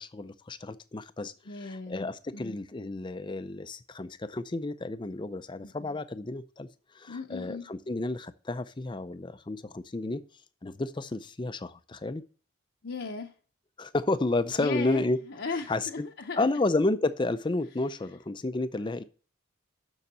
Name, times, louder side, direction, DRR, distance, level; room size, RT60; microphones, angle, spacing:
voice 1, 0.0-1.3 1.6-6.7 6.9-10.2 10.6-12.2 13.8-15.2 15.7-16.1 16.4-19.0, left 2 dB, 20° left, 0.4 m, -31 dB
voice 2, 1.5-2.6 5.6-6.0 7.1-7.7 12.8-13.3 14.6-16.5, left 4 dB, 55° left, 0.7 m, -37 dB
6.8 x 6.4 x 7.3 m
head